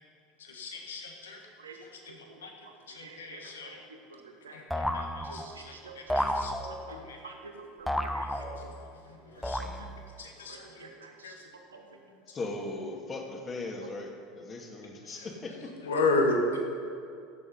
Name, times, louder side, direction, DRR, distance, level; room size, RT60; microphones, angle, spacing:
voice 1, 0.4-1.5 2.4-2.5 2.9-3.8 4.5-5.7 6.1-6.5 6.9-7.2 9.0-9.6 10.2-10.8 11.2-11.5 15.0-15.3 15.8-16.6, left 2 dB, 80° left, 2 dB, 1.5 m, -33 dB
voice 2, 1.6-4.9 5.2-6.3 6.6-12.4 13.8-13.9, right 4 dB, 85° right, 3 dB, 1.3 m, -50 dB
sound 1, 4.7-5.7 6.1-7.0 7.9-8.9 9.4-10.1, left 1 dB, 5° left, 0.8 m, -32 dB
voice 3, 12.3-14.1 14.4-15.7, left 2 dB, 30° left, 1 dB, 2.2 m, -38 dB
16.0 x 7.3 x 5.6 m, 2.6 s
hypercardioid pair, 75°, 0 cm